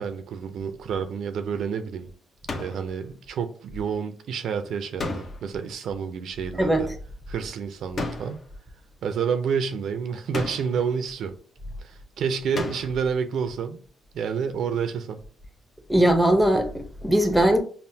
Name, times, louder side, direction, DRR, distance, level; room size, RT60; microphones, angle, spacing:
voice 1, 0.0-2.1 2.5-6.9 7.3-8.4 9.0-11.4 11.8-13.8 14.1-15.2, right 6 dB, 70° right, 0.4 m, -29 dB
sound 1, 2.5-2.9 5.0-5.6 8.0-8.5 10.3-10.9 12.5-13.1, left 3 dB, 45° left, 0.8 m, -33 dB
voice 2, 15.9-17.6, right 1 dB, ahead, 0.7 m, -20 dB
5.5 x 2.1 x 2.7 m
cardioid pair, 90°, 0 cm